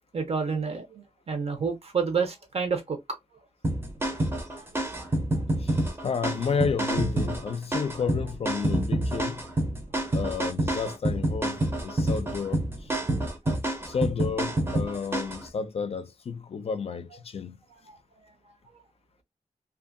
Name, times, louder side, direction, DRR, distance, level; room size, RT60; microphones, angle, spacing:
voice 1, 0.1-3.0 4.0-4.1 4.5-4.6 5.0-5.1 15.2-15.3 17.9-18.0, right 5 dB, 55° right, 0.8 m, -29 dB
sound 1, 3.6-15.4, right 1 dB, 20° right, 0.6 m, -28 dB
voice 2, 6.0-9.4 10.1-12.9 13.8-17.6, left 6 dB, 55° left, 0.4 m, -31 dB
2.6 x 2.5 x 2.5 m
wide cardioid pair, 150°, 12 cm